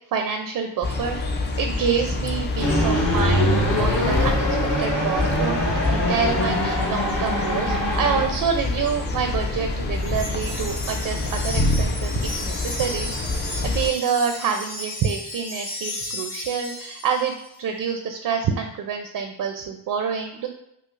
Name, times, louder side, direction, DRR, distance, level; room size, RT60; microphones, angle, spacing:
voice 1, 0.1-4.5 4.8-20.5, right 6 dB, 50° right, 5 dB, 0.5 m, -27 dB
sound 1, 0.8-13.9, left 2 dB, 25° left, 0.3 m, -27 dB
sound 2, 2.6-8.3, equal, 45° left, 1.4 m, -23 dB
Wind chime, 10.0-17.5, left 2 dB, 85° left, 1.3 m, -34 dB
5.0 x 2.1 x 2.4 m, 0.77 s
cardioid pair, 100°, 45 cm